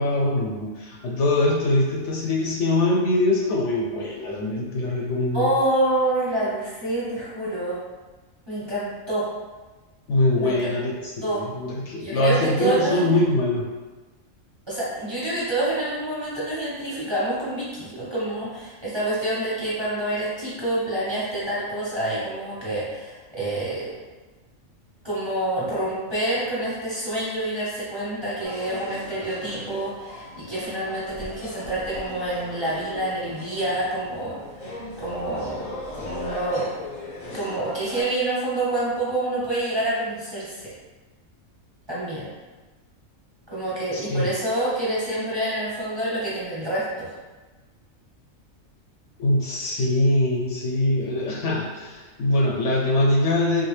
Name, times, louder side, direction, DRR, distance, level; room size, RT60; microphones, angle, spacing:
voice 1, 0.0-5.5 10.1-13.7 43.9-44.3 49.2-53.7, left 1 dB, 70° left, -2 dB, 0.8 m, -23 dB
voice 2, 5.3-7.8 8.5-9.2 10.4-10.6 11.2-11.4 12.0-13.1 14.7-24.0 25.0-34.4 35.0-36.7 37.3-40.6 41.9-42.3 43.5-47.1, right 1 dB, 25° right, -9 dB, 0.8 m, -27 dB
sound 1, 28.4-38.0, left 1 dB, 35° left, 0.7 m, -38 dB
3.8 x 2.3 x 3.1 m, 1.2 s
omnidirectional pair, 1.4 m